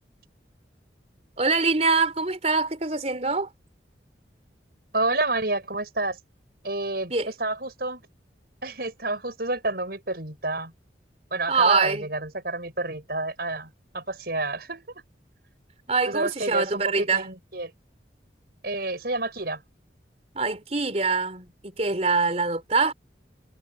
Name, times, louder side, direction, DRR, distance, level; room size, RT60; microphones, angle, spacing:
voice 1, 1.4-3.5 7.1-7.3 11.5-12.0 15.9-17.3 20.4-22.9, right 4 dB, 35° right, 3.7 m, -24 dB
voice 2, 4.9-6.2 6.6-7.1 7.4-8.0 8.6-10.7 11.3-14.8 16.0-17.7 18.6-19.6, right 2 dB, 55° right, 6.6 m, -29 dB
head